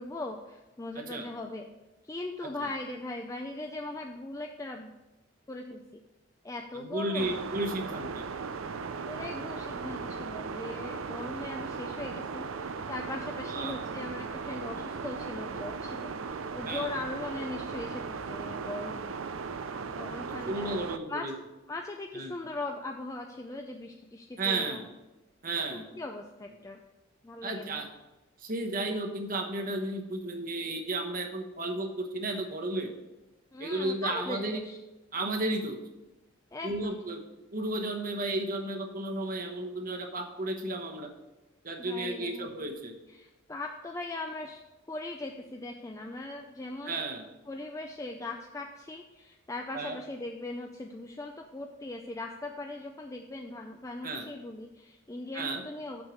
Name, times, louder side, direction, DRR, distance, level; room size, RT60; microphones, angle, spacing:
voice 1, 0.0-1.7 2.0-4.9 5.5-6.0 6.4-7.4 9.0-19.1 20.0-20.8 21.1-21.3 21.7-24.8 25.7-26.8 27.2-27.8 33.5-34.8 36.5-37.0 41.8-42.5 43.1-44.6 44.9-47.0 47.5-56.0, left 2 dB, 15° left, 3 dB, 0.4 m, -39 dB
voice 2, 0.9-1.3 2.6-2.7 6.7-8.3 13.4-13.8 16.6-16.9 20.3-21.3 22.1-22.3 24.4-24.9 25.4-25.8 27.4-27.9 28.4-32.9 33.6-34.6 35.1-35.8 36.6-37.2 37.5-41.1 41.6-42.9 46.8-47.3 49.7-50.0 54.0-54.3 55.3-55.6, right 2 dB, 45° right, 3 dB, 1.1 m, -33 dB
sound 1, 7.2-21.0, right 5 dB, 85° right, 0.5 m, -37 dB
6.5 x 6.1 x 6.4 m, 1.0 s
head